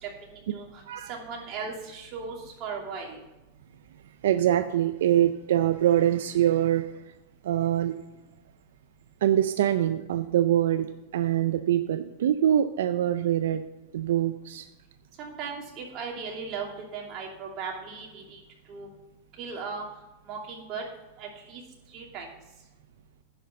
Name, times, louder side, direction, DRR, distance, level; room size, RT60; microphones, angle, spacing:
voice 1, 0.0-0.8 1.1-3.2 15.2-16.7 16.9-18.4 18.7-18.9 19.4-19.8 20.3-20.8 21.2-21.6 21.9-22.3, right 5 dB, 40° right, 0 dB, 2.7 m, -37 dB
voice 2, 4.2-6.9 7.4-7.9 9.2-13.6 13.9-14.7, right 11 dB, 80° right, 10 dB, 0.4 m, -24 dB
10.0 x 5.8 x 6.9 m, 1.0 s
supercardioid pair, 135°, 0 cm